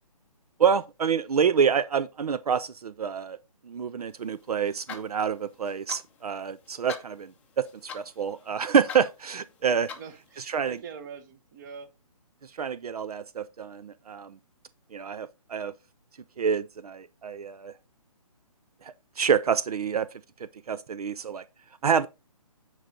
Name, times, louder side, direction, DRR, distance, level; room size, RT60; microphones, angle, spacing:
voice 1, 0.6-3.4 3.7-7.3 7.6-7.7 7.9-9.9 10.5-10.8 12.6-14.3 14.9-15.7 16.4-17.7 18.8-20.1 20.7-21.4 21.8-22.1, right 7 dB, 75° right, 0.6 m, -27 dB
sound 1, 4.1-10.8, left 6 dB, 5° left, 0.6 m, -46 dB
voice 2, 9.9-11.9, right 6 dB, 30° right, 1.1 m, -44 dB
9.5 x 4.7 x 3.9 m
hypercardioid pair, 155°, 19 cm